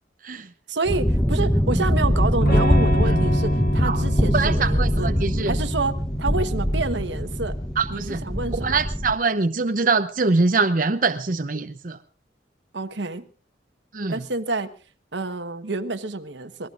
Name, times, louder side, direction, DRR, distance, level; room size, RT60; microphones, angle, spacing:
voice 1, 0.7-5.1 5.5-7.6 7.9-8.8 12.7-13.3 14.1-14.7 15.1-16.7, right 3 dB, 90° right, 9 dB, 1.2 m, -28 dB
sound 1, 0.9-9.2, equal, 5° left, 0.9 m, -23 dB
Electric guitar / Strum, 2.4-8.1, equal, 60° left, 4.7 m, -28 dB
voice 2, 4.3-5.5 7.8-8.2 8.5-12.0 13.9-14.2, right 3 dB, 50° right, 8 dB, 0.7 m, -23 dB
26.0 x 19.0 x 2.5 m, 0.35 s
head